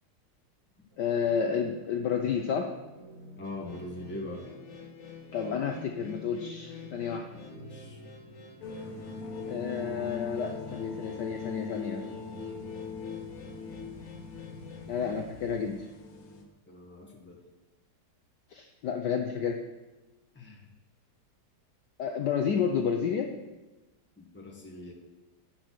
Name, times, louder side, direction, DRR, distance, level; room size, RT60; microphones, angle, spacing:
sound 1, 0.9-15.9, equal, 30° right, 3.0 m, -50 dB
voice 1, 1.0-2.7 5.3-7.3 9.5-12.0 14.9-15.8 18.5-19.6 22.0-23.3, left 7 dB, 65° left, 4 dB, 1.1 m, -30 dB
sound 2, 3.4-15.9, left 5 dB, 40° left, 1.4 m, -49 dB
voice 2, 3.4-4.4 7.3-8.0 16.7-17.4 20.3-20.7 24.2-24.9, left 2 dB, 5° left, -1 dB, 1.3 m, -42 dB
sound 3, 8.6-16.4, left 5 dB, 85° left, 2.3 m, -41 dB
10.5 x 6.4 x 6.0 m, 1.1 s
omnidirectional pair, 2.3 m